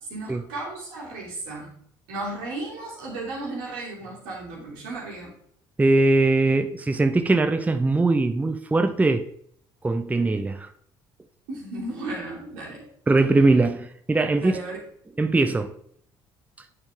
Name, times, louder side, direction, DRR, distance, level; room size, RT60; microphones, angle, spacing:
voice 1, 0.1-1.7 2.1-5.3 11.5-12.8 14.4-14.8, right 2 dB, 85° right, 2.7 m, -34 dB
voice 2, 5.8-9.3 9.8-10.7 13.1-14.6 15.2-15.7, right 2 dB, 15° right, 0.5 m, -21 dB
8.7 x 4.4 x 3.5 m
supercardioid pair, 65°, 11 cm